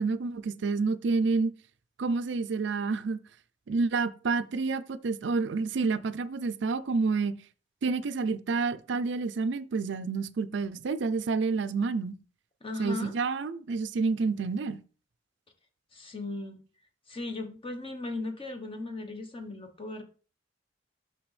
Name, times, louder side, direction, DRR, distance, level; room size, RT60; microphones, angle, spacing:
voice 1, 0.0-1.5 2.0-3.2 3.7-7.4 7.8-12.1 12.8-14.8, right 4 dB, 65° right, 0.4 m, -29 dB
voice 2, 12.6-13.1 15.9-16.6 17.1-20.0, left 2 dB, 30° left, 1.1 m, -37 dB
6.0 x 6.0 x 3.3 m
head